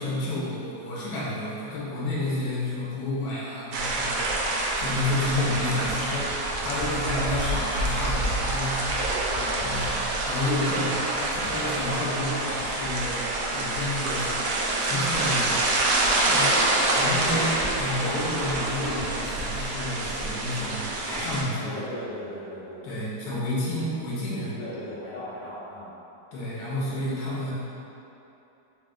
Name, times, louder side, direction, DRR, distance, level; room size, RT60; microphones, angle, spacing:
voice 1, 0.0-4.4 4.7-6.3 6.6-8.9 9.6-14.5 14.8-15.6 16.3-16.6 16.9-21.8 22.8-24.6 26.3-27.5, left 1 dB, 85° left, -7 dB, 1.6 m, -30 dB
sound 1, 3.7-21.4, right 2 dB, 85° right, 0.8 m, -27 dB
voice 2, 9.3-10.0 16.0-16.4 21.6-22.9 24.3-25.9, left 1 dB, 60° left, -18 dB, 1.7 m, -38 dB
4.7 x 2.1 x 3.5 m, 2.9 s
omnidirectional pair, 2.2 m